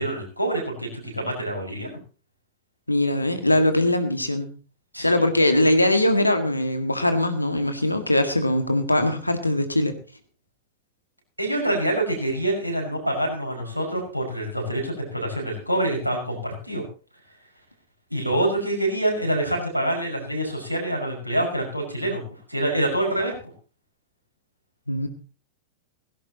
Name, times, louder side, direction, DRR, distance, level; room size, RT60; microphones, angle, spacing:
voice 1, 0.0-2.0 4.9-5.2 11.4-16.8 18.1-22.2 22.5-23.3, right 1 dB, 90° right, 0 dB, 5.6 m, -26 dB
voice 2, 2.9-4.5 5.0-10.0 24.9-25.1, left 1 dB, 85° left, 8 dB, 1.9 m, -21 dB
17.0 x 16.0 x 3.0 m, 0.35 s
figure-of-eight pair, 90°, 0 cm